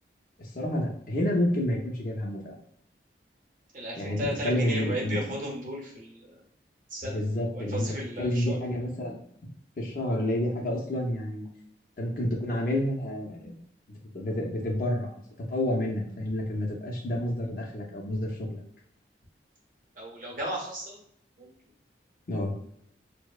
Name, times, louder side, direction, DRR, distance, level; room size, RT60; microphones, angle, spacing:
voice 1, 0.4-2.6 4.0-5.2 7.0-9.2 9.8-11.5 12.0-13.6 14.1-18.6 22.3-22.5, left 1 dB, 50° left, -1 dB, 0.5 m, -29 dB
voice 2, 3.7-6.4 6.9-7.2 7.5-8.6 20.0-21.0 21.4-21.5, right 1 dB, 45° right, -3 dB, 0.8 m, -35 dB
2.7 x 2.0 x 2.3 m, 0.69 s
head